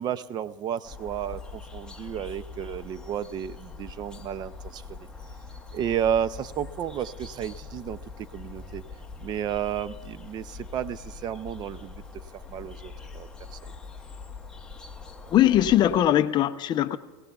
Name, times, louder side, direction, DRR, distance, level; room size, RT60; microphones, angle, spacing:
voice 1, 0.0-5.0 5.7-8.8 9.2-12.0 12.5-13.6, right 9 dB, 25° right, 0.4 m, -32 dB
sound 1, 0.8-16.0, left 4 dB, 5° left, 0.8 m, -43 dB
voice 2, 15.3-17.0, left 12 dB, 25° left, 0.5 m, -20 dB
22.0 x 18.0 x 2.3 m
supercardioid pair, 145°, 16 cm